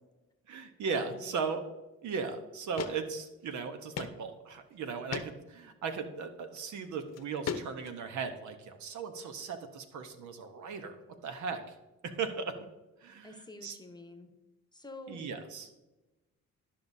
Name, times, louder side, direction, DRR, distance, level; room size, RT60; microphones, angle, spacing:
voice 1, 0.5-1.6 2.0-11.0 11.2-11.7 12.0-12.5 13.0-13.8 15.1-15.7, right 5 dB, 70° right, 8 dB, 1.0 m, -37 dB
voice 2, 1.0-1.5 13.2-14.3 14.7-15.2, left 2 dB, 15° left, 6 dB, 1.0 m, -48 dB
sound 1, 2.1-2.2 2.8-2.9 3.3-3.4 4.0-4.1 4.5-4.6 5.1-5.3 6.4-6.6 7.1-8.0, left 7 dB, 60° left, 0.8 m, -37 dB
12.5 x 5.7 x 2.7 m, 1.1 s
cardioid pair, 90°, 30 cm